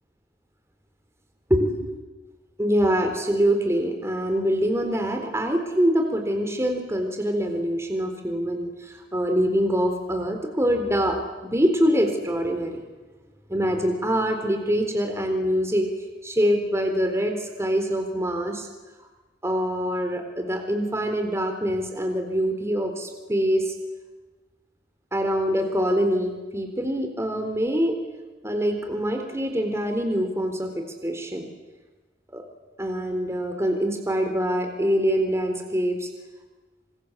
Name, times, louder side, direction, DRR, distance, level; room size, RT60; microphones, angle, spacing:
voice 1, 1.5-1.9 2.6-12.8 13.5-15.9 16.2-18.7 19.4-23.7 25.1-28.0 28.4-31.5 32.3-32.4 32.8-36.1, equal, 15° right, 4 dB, 4.0 m, -24 dB
27.0 x 26.5 x 8.2 m, 1.2 s
head